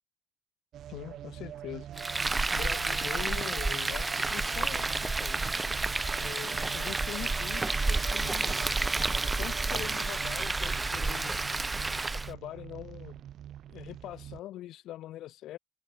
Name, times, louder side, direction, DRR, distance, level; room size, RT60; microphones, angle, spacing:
sound 1, 0.7-14.4, right 11 dB, 70° right, 2.1 m, -44 dB
voice 1, 0.9-1.9 2.5-5.4 6.2-8.7 9.4-11.5 12.1-13.2 13.7-15.6, left 14 dB, 85° left, 2.6 m, -43 dB
Frying (food), 2.0-12.3, right 3 dB, 20° right, 1.1 m, -30 dB
cardioid pair, 90°, 0 cm